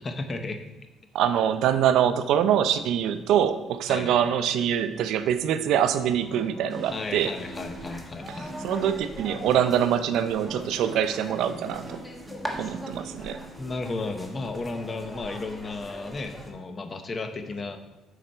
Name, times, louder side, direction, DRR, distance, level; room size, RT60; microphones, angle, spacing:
voice 1, 0.0-0.6 3.9-4.2 6.9-8.5 13.6-17.8, left 3 dB, 30° left, 7 dB, 0.8 m, -34 dB
voice 2, 1.1-7.3 8.6-12.0 12.6-13.4, right 9 dB, 75° right, 11 dB, 0.5 m, -24 dB
sound 1, 6.0-13.9, right 1 dB, 35° right, 1.6 m, -43 dB
sound 2, 6.8-16.5, equal, 5° left, 1.2 m, -42 dB
6.7 x 4.9 x 4.3 m, 1.0 s
cardioid pair, 115°, 0 cm